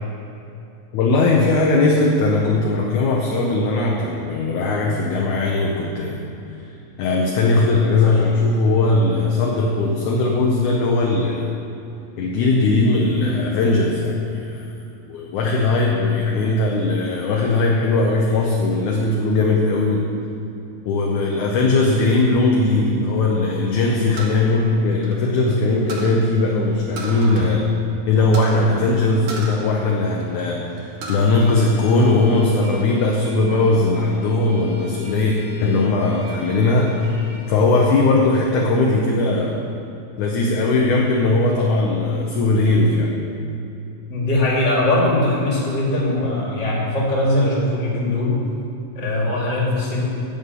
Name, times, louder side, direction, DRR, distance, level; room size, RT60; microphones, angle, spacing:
voice 1, 0.9-6.2 7.0-11.5 12.2-14.6 15.1-20.0 20.9-27.7 28.1-35.4 35.6-37.1 37.5-39.6 40.2-43.1, left 2 dB, 70° left, -1 dB, 2.0 m, -19 dB
sound 1, 24.2-25.5 25.9-26.2 27.0-27.6 27.8-27.9 28.3-28.6 29.3-30.4 30.8-31.3 31.7-32.5, right 3 dB, 60° right, 1.6 m, -34 dB
Bowed string instrument, 31.3-37.6, right 1 dB, 10° right, 2.2 m, -43 dB
voice 2, 44.1-48.4 48.9-50.0, left 1 dB, 35° left, -5 dB, 2.5 m, -20 dB
11.0 x 5.4 x 8.0 m, 2.8 s
omnidirectional pair, 4.1 m